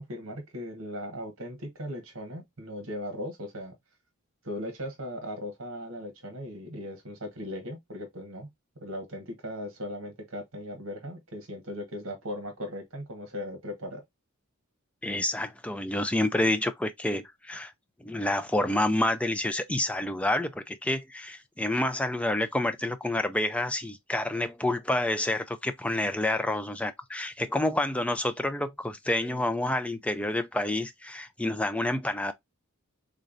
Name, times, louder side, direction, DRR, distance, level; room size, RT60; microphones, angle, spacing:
voice 1, 0.0-3.8 4.4-8.5 8.7-14.0, left 1 dB, 65° right, 1.3 m, -38 dB
voice 2, 15.0-17.7 18.0-32.3, left 1 dB, 5° left, 0.3 m, -28 dB
3.8 x 3.3 x 2.5 m
head